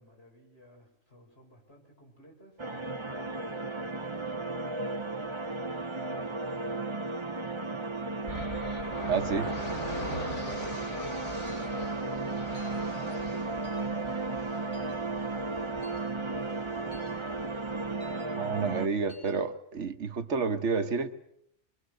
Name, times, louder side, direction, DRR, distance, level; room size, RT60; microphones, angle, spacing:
voice 1, 0.0-7.9, equal, 60° left, -1 dB, 7.2 m, -58 dB
sound 1, 2.6-18.9, right 3 dB, 25° right, 1.0 m, -34 dB
sound 2, 8.3-18.1, left 1 dB, 90° left, 4.3 m, -42 dB
voice 2, 9.1-9.5 18.3-21.1, right 5 dB, 85° right, 8 dB, 1.6 m, -29 dB
sound 3, 11.5-11.7 12.5-12.8 13.6-13.9 14.7-15.0 15.8-16.0 16.9-17.1 18.0-18.2 19.1-19.3, left 2 dB, 25° left, 8.2 m, -54 dB
25.5 x 23.0 x 6.6 m, 0.75 s
omnidirectional pair, 1.2 m